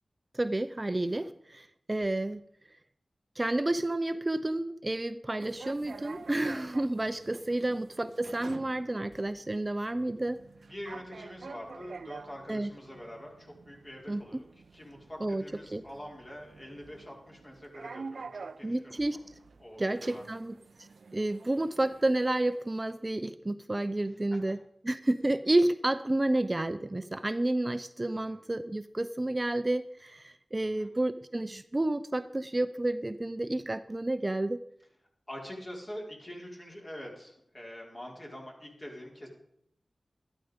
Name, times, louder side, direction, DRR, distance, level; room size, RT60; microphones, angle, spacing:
voice 1, 0.3-2.4 3.4-10.4 12.5-12.7 14.1-14.4 15.2-15.4 15.7-15.8 18.6-19.2 19.8-24.6 24.8-34.6, right 1 dB, 30° right, 11 dB, 0.6 m, -30 dB
sound 1, 5.4-22.9, right 4 dB, 80° right, 0.5 m, -49 dB
voice 2, 10.7-14.4 14.7-19.0 19.6-19.8 20.1-20.3 24.3-24.6 28.1-28.4 30.6-30.9 35.3-39.3, equal, 35° left, -1 dB, 5.0 m, -45 dB
13.0 x 12.5 x 5.2 m, 0.71 s
wide cardioid pair, 55°, 0 cm